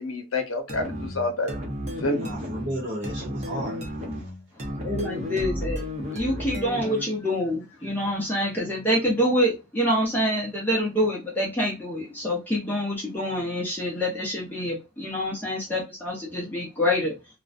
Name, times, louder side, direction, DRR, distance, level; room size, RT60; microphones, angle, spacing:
voice 1, 0.0-1.6 1.8-2.3, left 2 dB, 75° left, 0.8 m, -28 dB
sound 1, 0.7-7.2, equal, 30° right, 0.6 m, -33 dB
voice 2, 2.1-4.3, right 1 dB, 55° right, 0.9 m, -34 dB
voice 3, 4.6-17.1, equal, 10° left, 0.6 m, -26 dB
2.5 x 2.1 x 2.4 m
head